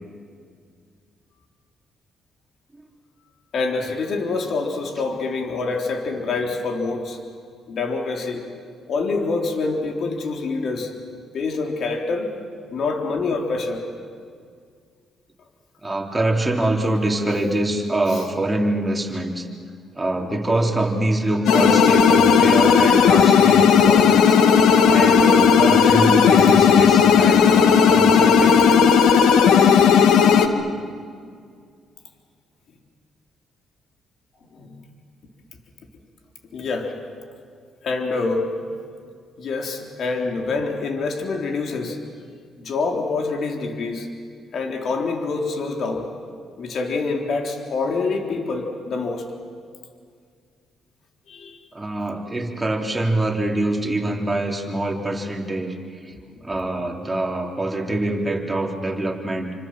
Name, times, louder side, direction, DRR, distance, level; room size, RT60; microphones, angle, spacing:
voice 1, 3.5-7.2 7.7-8.4 8.9-10.9 11.3-12.3 12.7-13.8 18.1-18.2 34.5-34.8 36.5-36.9 37.8-38.7 39.4-42.0 42.6-44.1 44.5-46.1 46.6-49.3 51.3-51.6, left 3 dB, 60° left, 2 dB, 3.8 m, -26 dB
voice 2, 15.8-19.5 19.9-24.4 24.9-29.0 30.7-30.9 51.7-55.8 56.0-56.1 56.4-59.5, right 1 dB, 15° right, 0 dB, 3.7 m, -24 dB
sound 1, 21.5-30.5, left 7 dB, 85° left, 1.7 m, -14 dB
27.5 x 25.5 x 7.7 m, 2.2 s
cardioid pair, 90°, 0 cm